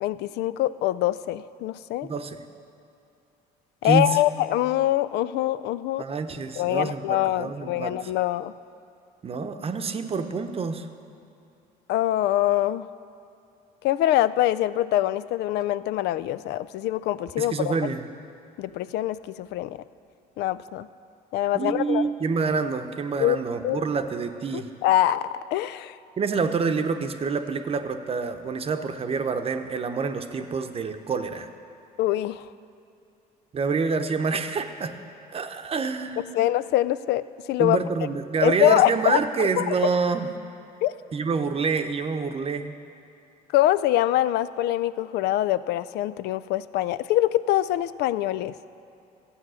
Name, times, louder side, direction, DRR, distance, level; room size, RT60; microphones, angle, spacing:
voice 1, 0.0-2.1 3.8-6.0 6.6-8.5 11.9-12.9 13.8-17.7 18.6-19.8 20.4-20.9 21.3-22.0 23.2-23.8 24.5-25.9 32.0-32.4 36.3-37.8 38.4-39.7 40.8-40.9 43.5-48.5, left 13 dB, 80° left, 16 dB, 0.4 m, -24 dB
voice 2, 2.0-2.4 3.8-4.1 6.0-7.9 9.2-10.9 17.4-18.0 21.5-24.7 26.2-31.5 33.5-34.9 35.3-36.5 37.6-40.3 41.1-42.7, right 5 dB, 35° right, 7 dB, 0.8 m, -27 dB
14.0 x 8.6 x 6.3 m, 2.7 s
cardioid pair, 110°, 17 cm